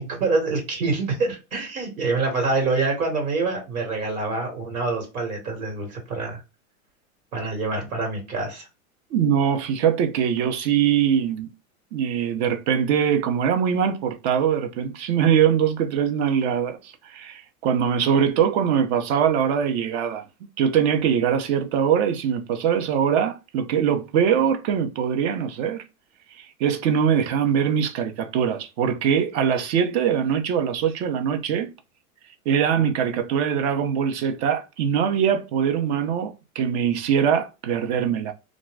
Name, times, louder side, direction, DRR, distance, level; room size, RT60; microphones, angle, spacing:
voice 1, 0.0-6.4 7.3-8.7, right 3 dB, 90° right, 1.6 m, -26 dB
voice 2, 9.1-11.5 11.9-20.2 20.6-25.8 26.3-31.7 32.5-38.3, right 8 dB, 50° right, 0.7 m, -22 dB
2.5 x 2.1 x 3.2 m
hypercardioid pair, 120°, 42 cm